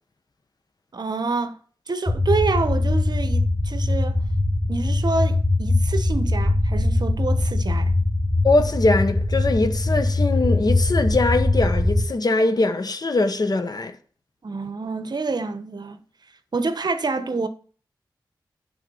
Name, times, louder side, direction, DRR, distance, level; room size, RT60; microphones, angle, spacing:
voice 1, 0.9-1.6 1.9-4.2 4.7-8.0 14.4-16.0 16.5-17.5, right 3 dB, 60° right, 0.9 m, -27 dB
sound 1, 2.1-12.1, left 2 dB, ahead, 1.6 m, -21 dB
voice 2, 8.4-13.9, left 2 dB, 55° left, 1.0 m, -22 dB
9.4 x 3.8 x 5.5 m
cardioid pair, 50°, 8 cm